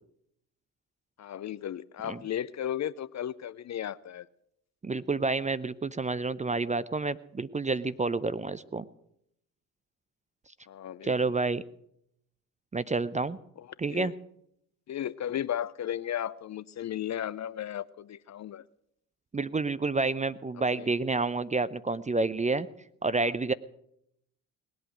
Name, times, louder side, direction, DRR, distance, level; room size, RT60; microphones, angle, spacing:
voice 1, 1.2-4.3 10.7-11.3 13.6-14.1 14.9-18.6 20.8-20.9 23.2-23.3, left 10 dB, 35° left, 20 dB, 0.6 m, -35 dB
voice 2, 4.8-8.9 11.0-11.6 12.7-13.4 13.8-14.1 19.3-22.7 23.0-23.5, right 3 dB, 15° right, 16 dB, 0.6 m, -29 dB
19.5 x 8.4 x 7.9 m, 0.75 s
hypercardioid pair, 50°, 47 cm